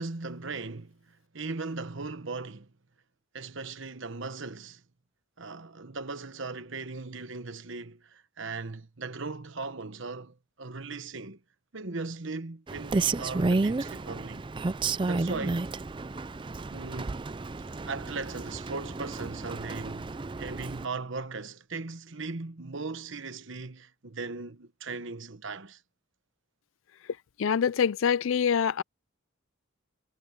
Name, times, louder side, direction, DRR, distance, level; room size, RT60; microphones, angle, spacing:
voice 1, 0.0-2.7 3.3-4.8 5.4-11.4 11.7-14.4 15.0-15.7 16.7-17.2 17.8-25.8, right 3 dB, 60° right, 1.2 m, -38 dB
Rain, 12.7-20.9, right 3 dB, 25° right, 0.4 m, -32 dB
voice 2, 27.4-28.8, left 7 dB, 65° left, 0.4 m, -25 dB
head